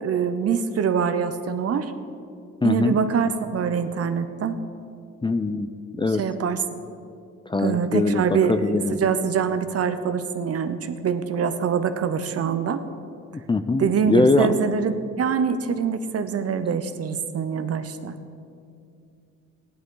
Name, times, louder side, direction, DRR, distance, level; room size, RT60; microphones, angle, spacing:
voice 1, 0.0-1.9 2.6-4.6 6.2-6.8 7.6-12.8 13.8-18.1, right 6 dB, 50° right, 10 dB, 0.8 m, -24 dB
voice 2, 2.6-3.0 5.2-5.7 6.0-6.2 7.5-9.0 13.3-14.5, left 3 dB, 15° left, 9 dB, 0.5 m, -22 dB
15.5 x 11.0 x 3.8 m, 2.5 s
cardioid pair, 90°, 30 cm